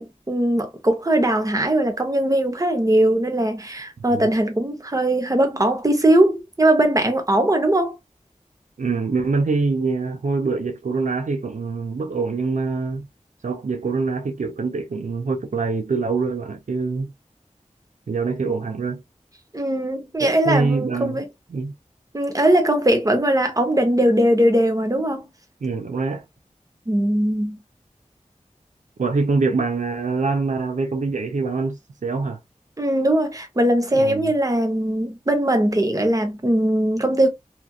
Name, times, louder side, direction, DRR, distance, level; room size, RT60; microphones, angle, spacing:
voice 1, 0.0-7.9 19.5-21.2 22.1-25.3 26.9-27.6 32.8-37.3, right 1 dB, 25° right, 0.8 m, -20 dB
voice 2, 8.8-13.1 13.4-17.1 18.1-19.0 20.2-21.2 21.5-21.7 25.6-26.3 29.0-32.4 33.9-34.3, right 4 dB, 75° right, 0.4 m, -24 dB
2.9 x 2.4 x 2.3 m
wide cardioid pair, 55°, 13 cm